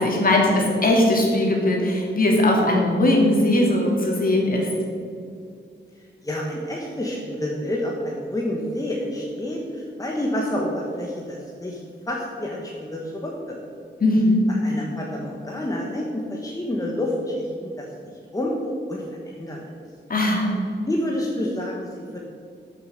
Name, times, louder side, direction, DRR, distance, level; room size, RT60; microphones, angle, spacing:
voice 1, 0.0-4.7 14.0-14.5 20.1-20.6, left 1 dB, 45° left, -1 dB, 2.7 m, -19 dB
voice 2, 6.2-11.8 12.1-13.6 14.5-17.9 18.3-18.6 18.9-19.6 20.9-22.2, left 1 dB, 15° left, -2 dB, 1.4 m, -28 dB
13.0 x 6.8 x 6.5 m, 2.3 s
wide cardioid pair, 145°, 20 cm